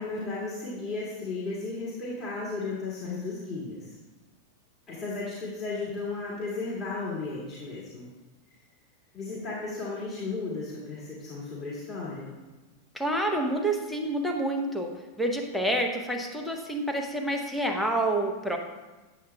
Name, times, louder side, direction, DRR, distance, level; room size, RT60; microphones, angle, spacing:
voice 1, 0.0-4.0 4.9-8.1 9.1-12.3, left 3 dB, 25° left, -9 dB, 2.1 m, -34 dB
voice 2, 12.9-18.6, right 1 dB, ahead, 1 dB, 0.8 m, -28 dB
8.7 x 7.5 x 2.3 m, 1.2 s
figure-of-eight pair, 90°, 0 cm